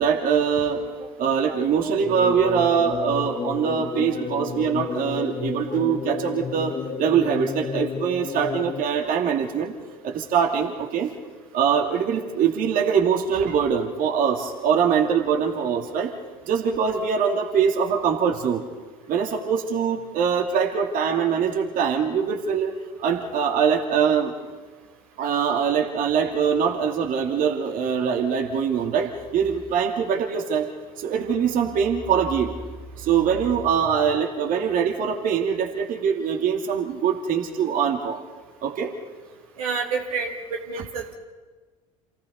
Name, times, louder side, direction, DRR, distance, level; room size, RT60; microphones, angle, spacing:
voice 1, 0.0-9.7 10.0-11.1 11.5-16.1 16.5-18.6 19.1-22.7 23.0-24.3 25.2-30.7 31.0-32.5 33.0-38.2 38.6-38.9, right 7 dB, 50° right, 2 dB, 2.5 m, -23 dB
sound 1, 2.0-8.8, left 6 dB, 30° left, 1.1 m, -31 dB
voice 2, 39.6-41.1, right 5 dB, 75° right, 1 dB, 2.8 m, -29 dB
28.0 x 17.5 x 5.5 m, 1.3 s
hypercardioid pair, 65°, 18 cm